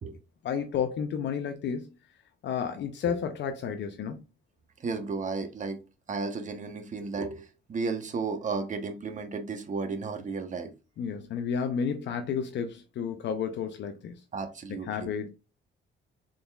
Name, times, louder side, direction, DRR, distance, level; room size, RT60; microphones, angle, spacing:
voice 1, 0.4-1.9 2.4-4.2 11.0-14.2 14.7-15.3, left 7 dB, 65° left, 0.5 m, -31 dB
voice 2, 4.8-5.8 6.1-10.7 14.3-15.1, right 4 dB, 40° right, 1.0 m, -33 dB
3.9 x 3.8 x 2.3 m
cardioid pair, 90°, 20 cm